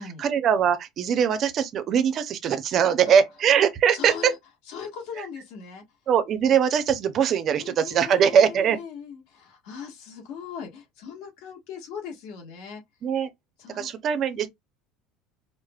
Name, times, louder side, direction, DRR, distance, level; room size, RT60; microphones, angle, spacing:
voice 1, 0.2-4.3 6.1-8.8 13.0-13.3 13.7-14.5, right 8 dB, 35° right, 0.5 m, -21 dB
voice 2, 3.9-4.4 4.7-5.8 7.6-12.8 13.6-13.9, left 6 dB, 60° left, 1.4 m, -39 dB
4.8 x 2.0 x 2.3 m
cardioid pair, 160°, 0 cm